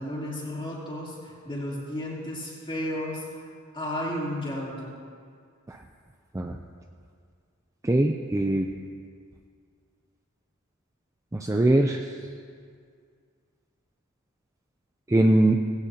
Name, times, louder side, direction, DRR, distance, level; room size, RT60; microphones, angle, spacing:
voice 1, 0.0-3.5 3.7-4.9, left 1 dB, 25° left, -6 dB, 3.4 m, -33 dB
voice 2, 7.8-8.7 11.3-12.1 15.1-15.5, right 1 dB, 15° right, 3 dB, 0.5 m, -22 dB
18.5 x 16.0 x 2.9 m, 2.1 s
head